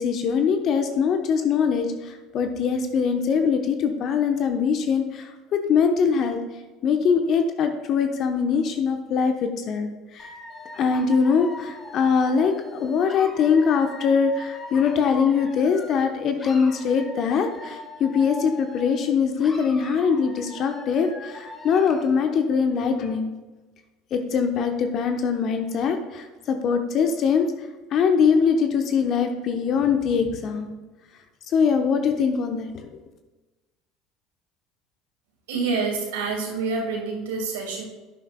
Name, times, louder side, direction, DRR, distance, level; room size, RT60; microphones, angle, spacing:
voice 1, 0.0-6.4 6.8-10.3 10.7-23.3 24.1-27.5 27.9-30.7 31.5-32.9, left 6 dB, 45° left, 6 dB, 0.9 m, -22 dB
Dog / Alarm, 10.2-16.1 16.4-19.1 19.4-22.1, left 2 dB, 20° left, 1.7 m, -41 dB
voice 2, 35.5-37.8, right 4 dB, 70° right, 0 dB, 2.2 m, -27 dB
11.0 x 9.9 x 2.2 m, 1.2 s
figure-of-eight pair, 70°, 0 cm